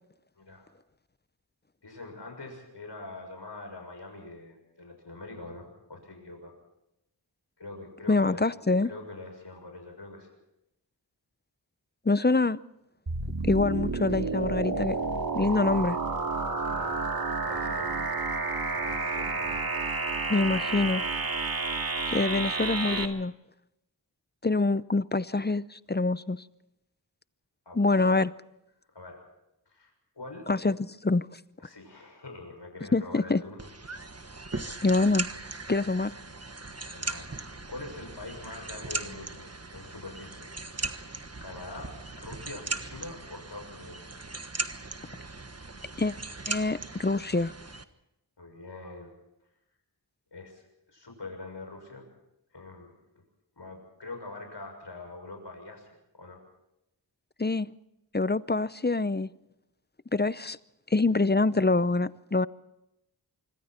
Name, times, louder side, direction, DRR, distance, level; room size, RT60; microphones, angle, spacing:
voice 1, 0.4-0.7 1.8-6.5 7.6-8.4 8.8-10.3 16.6-17.0 17.4-18.2 18.7-19.7 27.6-28.2 28.9-29.2 29.7-30.5 31.6-33.7 34.4-34.6 36.9-37.3 37.7-40.5 40.8-41.1 41.4-44.1 48.4-49.1 50.3-50.6 50.9-52.1 52.5-53.0 53.6-55.9 56.1-56.4, left 2 dB, 75° left, 3 dB, 6.7 m, -44 dB
voice 2, 8.1-8.9 12.1-12.6 13.4-15.0 15.3-16.0 20.3-21.0 22.1-23.3 24.4-26.4 27.8-28.3 30.5-31.3 32.9-33.4 34.8-35.3 35.7-36.1 46.0-46.1 46.5-47.5 57.4-57.7 58.1-59.3 60.1-60.6 60.9-62.5, left 3 dB, 25° left, 16 dB, 0.7 m, -25 dB
sound 1, 13.1-23.1, right 3 dB, 55° right, 2.3 m, -30 dB
sound 2, 33.6-47.8, right 3 dB, 35° right, 1.4 m, -38 dB
26.0 x 24.5 x 4.4 m, 0.87 s
wide cardioid pair, 55°, 42 cm